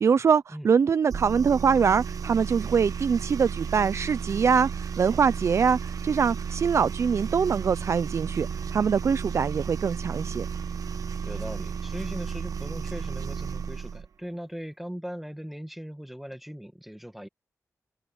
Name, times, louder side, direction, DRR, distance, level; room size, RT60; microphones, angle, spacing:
voice 1, 0.0-10.5, right 6 dB, 55° right, 0.4 m, -23 dB
sound 1, 1.1-14.1, right 6 dB, 75° right, 0.9 m, -33 dB
voice 2, 11.2-17.3, equal, 5° right, 1.5 m, -39 dB
wide cardioid pair, 165°, 6 cm